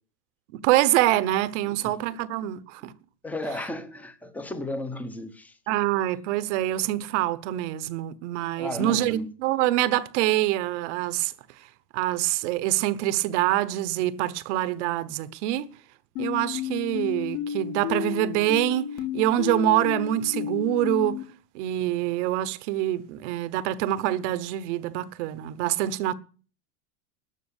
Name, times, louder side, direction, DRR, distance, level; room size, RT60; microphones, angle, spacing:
voice 1, 0.5-2.9 5.7-11.3 11.9-15.7 16.2-21.2 21.5-26.1, right 14 dB, 45° right, 1.0 m, -25 dB
voice 2, 1.6-1.9 3.2-5.5 8.6-9.2, left 1 dB, 5° left, 0.8 m, -34 dB
sound 1, 16.2-21.2, left 11 dB, 55° left, 2.3 m, -32 dB
13.0 x 7.5 x 9.7 m
supercardioid pair, 160°, 49 cm